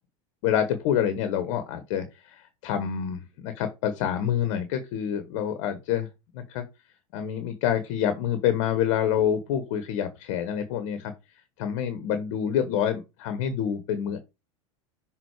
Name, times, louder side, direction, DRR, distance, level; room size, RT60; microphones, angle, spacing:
voice 1, 0.4-6.1 6.3-6.7 7.1-11.1 11.6-14.2, left 9 dB, 65° left, 1.1 m, -27 dB
6.2 x 3.7 x 4.7 m
hypercardioid pair, 100°, 16 cm